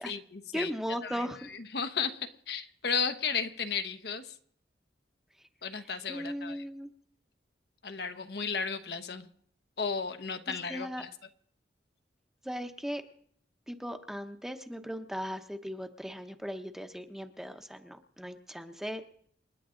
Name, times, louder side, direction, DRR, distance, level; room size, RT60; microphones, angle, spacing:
voice 1, 0.0-0.7 1.0-4.3 5.6-6.6 7.8-9.3 9.8-11.1, left 6 dB, 65° left, 7 dB, 1.0 m, -34 dB
voice 2, 0.5-1.4 6.1-6.9 10.7-11.0 12.4-13.0 13.7-19.3, equal, 5° right, 6 dB, 0.9 m, -37 dB
28.5 x 10.0 x 3.8 m, 0.62 s
head